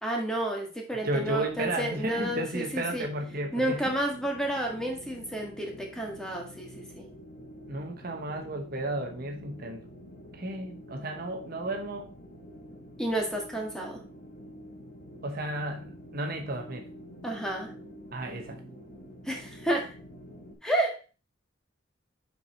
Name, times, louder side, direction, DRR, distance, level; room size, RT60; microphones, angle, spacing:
voice 1, 0.0-3.1 3.5-7.1 13.0-14.0 17.2-17.7 19.2-19.9 20.6-21.1, right 1 dB, 5° left, 0 dB, 1.6 m, -31 dB
sound 1, 1.0-20.5, equal, 45° left, 2.5 m, -48 dB
voice 2, 1.0-3.8 7.7-9.8 10.3-12.1 15.2-16.9 18.1-18.6, right 1 dB, 50° right, 4 dB, 0.9 m, -33 dB
7.1 x 4.7 x 4.2 m, 0.35 s
head